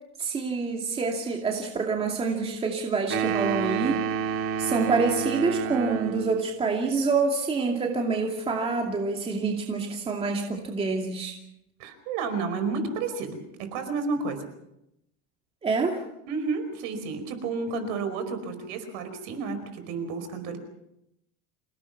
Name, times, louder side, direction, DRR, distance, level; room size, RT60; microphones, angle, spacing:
voice 1, 0.2-4.0 4.6-11.3 15.6-16.0, right 4 dB, 15° right, 1 dB, 2.5 m, -27 dB
sound 1, 3.1-6.5, right 7 dB, 35° right, 1.6 m, -29 dB
voice 2, 11.8-14.5 16.3-20.6, right 4 dB, 55° right, 9 dB, 5.0 m, -31 dB
28.0 x 18.0 x 6.0 m, 0.83 s
supercardioid pair, 155°, 38 cm